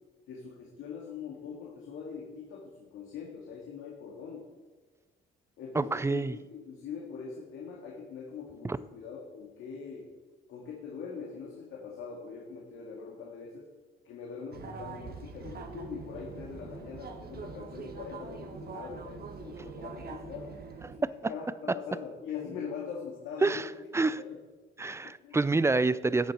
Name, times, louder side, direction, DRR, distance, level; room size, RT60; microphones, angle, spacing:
voice 1, 0.3-4.5 5.6-10.1 10.5-13.7 14.0-20.5 21.0-23.6 23.9-24.4 25.0-25.4, left 6 dB, 85° left, -2 dB, 1.9 m, -42 dB
voice 2, 5.8-6.3 8.6-8.8 21.0-21.3 23.4-23.7 23.9-24.2 24.8-26.3, right 3 dB, 15° right, 17 dB, 0.4 m, -27 dB
sound 1, 14.5-21.0, right 5 dB, 50° right, 1.4 m, -43 dB
13.5 x 8.5 x 4.3 m, 1.4 s
cardioid pair, 90°, 20 cm